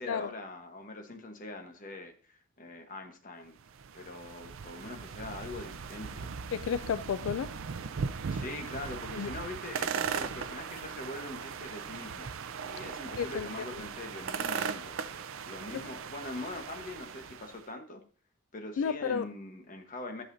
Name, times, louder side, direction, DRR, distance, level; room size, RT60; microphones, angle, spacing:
voice 1, 0.0-3.6 3.9-6.4 8.3-12.3 12.6-14.9 15.5-18.0 18.5-20.2, left 2 dB, 40° left, 1.2 m, -42 dB
sound 1, 3.6-17.6, right 6 dB, 80° right, 0.5 m, -38 dB
voice 2, 6.5-7.5 9.2-9.3 13.2-13.5 15.7-15.8 18.8-19.3, left 7 dB, 80° left, 0.3 m, -32 dB
11.0 x 6.5 x 2.7 m
head